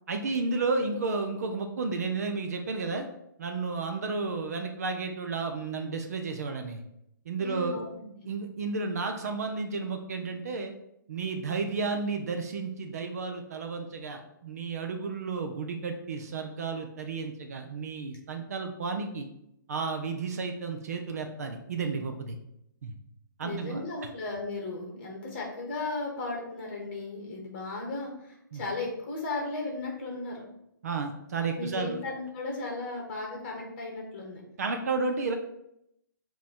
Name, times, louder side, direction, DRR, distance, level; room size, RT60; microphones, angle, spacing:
voice 1, 0.1-3.1 3.4-6.8 7.3-7.8 8.3-10.7 11.1-19.3 19.7-22.4 22.8-22.9 23.4-23.8 28.5-28.6 30.8-32.0 34.6-35.3, right 4 dB, 50° right, 5 dB, 0.8 m, -32 dB
voice 2, 7.4-8.3 23.4-30.5 31.6-34.4, left 3 dB, 35° left, 0 dB, 1.7 m, -36 dB
7.4 x 3.0 x 4.4 m, 0.79 s
hypercardioid pair, 165°, 11 cm